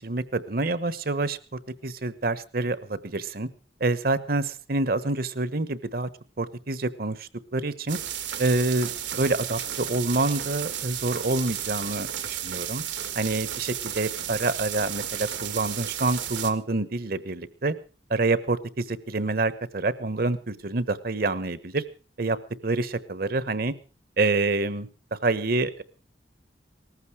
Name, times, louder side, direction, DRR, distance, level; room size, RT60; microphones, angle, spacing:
voice 1, 0.0-3.5 3.8-6.1 6.4-8.0 8.4-12.8 13.1-17.7 18.1-21.8 22.2-22.4 22.6-23.7 24.2-25.8, right 2 dB, 55° right, 15 dB, 1.1 m, -27 dB
sound 1, 7.9-16.5, right 10 dB, 80° right, 1.8 m, -33 dB
19.0 x 14.5 x 4.8 m, 0.36 s
head